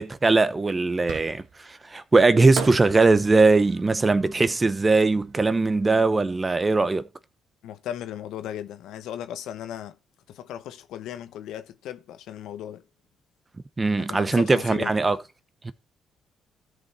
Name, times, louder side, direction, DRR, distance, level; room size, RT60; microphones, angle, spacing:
voice 1, 0.0-7.1 13.8-15.2 15.6-15.7, right 3 dB, 25° right, 0.8 m, -20 dB
Fireworks, 1.1-1.7 2.5-5.7, right 7 dB, 75° right, 1.7 m, -39 dB
voice 2, 7.6-10.0 10.3-12.8 14.0-14.9, left 10 dB, 85° left, 1.0 m, -36 dB
13.5 x 5.3 x 4.2 m
cardioid pair, 90°, 0 cm